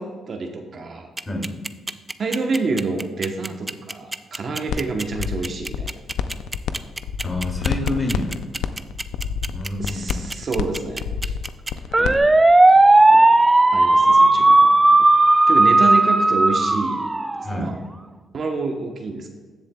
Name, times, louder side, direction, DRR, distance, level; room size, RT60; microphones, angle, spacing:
voice 1, 0.0-1.1 2.2-5.9 9.8-11.3 12.0-12.2 13.1-13.3 13.7-15.1 15.5-17.2 17.5-17.8 18.3-19.3, right 3 dB, 50° right, 3 dB, 1.0 m, -28 dB
sound 1, 1.2-17.6, right 2 dB, 15° right, 0.4 m, -15 dB
sound 2, 4.7-4.8 5.1-6.7 7.0-12.2, left 8 dB, 85° left, 0.5 m, -28 dB
voice 2, 7.2-8.3 9.5-10.2 17.4-17.8, left 1 dB, 25° left, 0 dB, 2.5 m, -27 dB
15.0 x 7.3 x 2.3 m, 1.4 s
cardioid pair, 90°, 0 cm